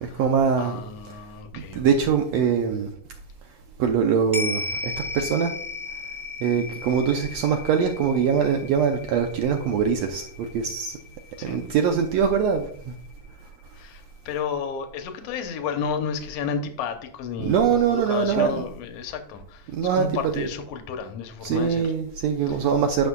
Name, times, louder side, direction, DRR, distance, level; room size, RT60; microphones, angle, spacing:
voice 1, 0.0-0.8 1.5-2.9 3.8-5.5 6.4-11.0 11.4-12.9 17.4-18.6 19.7-20.5 21.4-23.1, right 7 dB, 80° right, 1.5 m, -23 dB
voice 2, 0.6-1.8 11.4-11.6 13.7-17.6 17.9-21.9 22.4-22.6, left 6 dB, 70° left, 1.5 m, -32 dB
sound 1, 4.3-12.9 13.2-13.3, left 3 dB, 10° right, 0.8 m, -36 dB
9.6 x 6.4 x 2.3 m
omnidirectional pair, 3.7 m